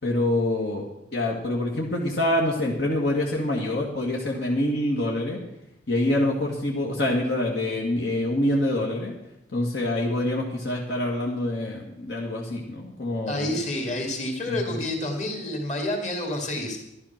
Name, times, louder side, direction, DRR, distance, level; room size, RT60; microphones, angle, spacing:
voice 1, 0.0-0.8 1.1-5.4 5.9-9.1 9.5-13.6 14.5-14.8, left 1 dB, 65° left, -1 dB, 1.9 m, -26 dB
voice 2, 13.3-16.8, left 1 dB, 40° left, 2 dB, 2.6 m, -29 dB
12.0 x 11.5 x 5.9 m, 0.82 s
head